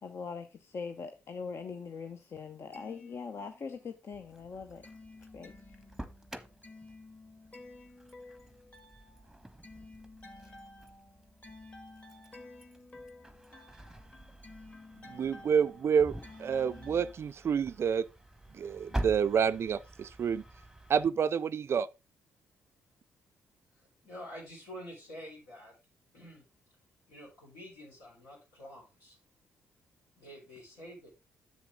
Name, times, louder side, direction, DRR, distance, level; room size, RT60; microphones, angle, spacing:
voice 1, 0.0-4.9 5.3-5.6, left 5 dB, 45° left, 0.8 m, -41 dB
sound 1, 2.7-3.9 4.3-17.1, left 2 dB, 20° left, 1.6 m, -53 dB
Engine starting, 4.1-21.1, right 1 dB, 5° right, 1.0 m, -46 dB
voice 2, 15.1-18.0 18.5-20.4 20.9-21.9, right 7 dB, 45° right, 0.4 m, -29 dB
voice 3, 23.8-25.7 26.1-26.5 27.1-29.2 30.2-31.1, equal, 75° left, 3.7 m, -48 dB
7.5 x 7.2 x 3.7 m
figure-of-eight pair, 40°, 6 cm